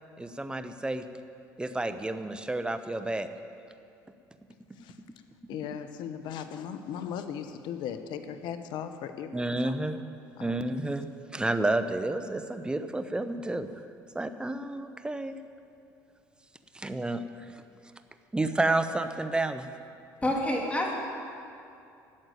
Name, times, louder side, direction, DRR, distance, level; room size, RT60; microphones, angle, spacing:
voice 1, 0.2-1.0 1.6-3.3 9.3-10.0 10.4-11.1 11.3-13.7 14.1-15.4 16.7-17.6 18.3-19.7, right 2 dB, 10° right, 0.9 m, -30 dB
voice 2, 5.5-9.7 10.4-10.6, left 8 dB, 65° left, 1.0 m, -37 dB
voice 3, 20.2-20.9, left 1 dB, 15° left, 2.8 m, -27 dB
12.0 x 7.9 x 9.2 m
supercardioid pair, 75°, 8 cm